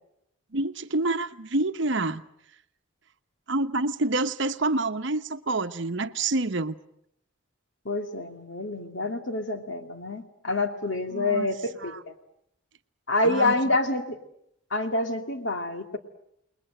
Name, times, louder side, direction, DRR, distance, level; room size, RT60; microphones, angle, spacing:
voice 1, 0.5-2.2 3.5-6.8 11.1-11.5 11.8-12.0 13.2-13.5, right 2 dB, 60° right, 1.0 m, -27 dB
voice 2, 7.8-12.1 13.1-14.2 14.7-16.0, left 2 dB, 60° left, 2.4 m, -27 dB
29.0 x 21.0 x 7.8 m
head